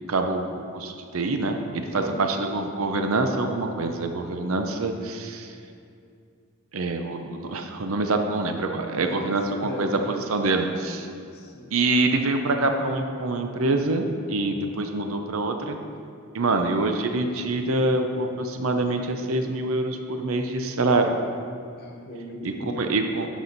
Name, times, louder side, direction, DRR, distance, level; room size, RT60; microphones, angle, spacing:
voice 1, 0.1-5.5 6.7-11.1 11.7-15.8 16.3-21.1 22.4-23.3, right 2 dB, 80° right, 5 dB, 0.7 m, -25 dB
voice 2, 1.9-2.2 9.0-10.1 11.3-11.7 21.8-23.0, left 1 dB, 50° left, 1 dB, 1.1 m, -37 dB
11.0 x 6.2 x 4.0 m, 2.4 s
head